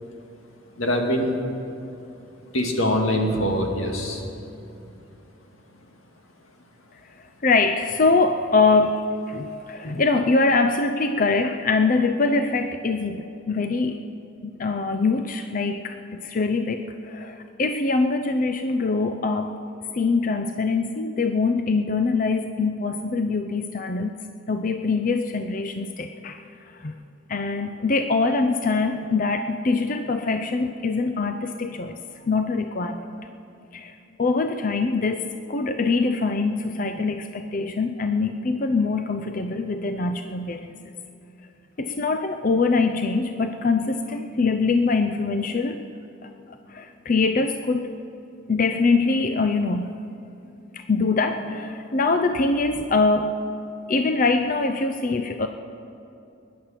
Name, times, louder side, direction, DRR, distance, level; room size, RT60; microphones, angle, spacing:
voice 1, 0.8-1.3 2.5-4.2, equal, 90° left, 2 dB, 2.1 m, -23 dB
voice 2, 7.2-14.0 14.4-19.5 19.9-24.2 24.5-26.4 26.8-26.9 27.3-32.0 32.3-33.2 33.7-40.7 41.8-45.8 46.2-46.3 46.7-47.9 48.5-50.0 50.7-53.4 53.9-55.5, left 3 dB, 40° left, 7 dB, 0.5 m, -23 dB
21.0 x 10.5 x 5.8 m, 2.7 s
head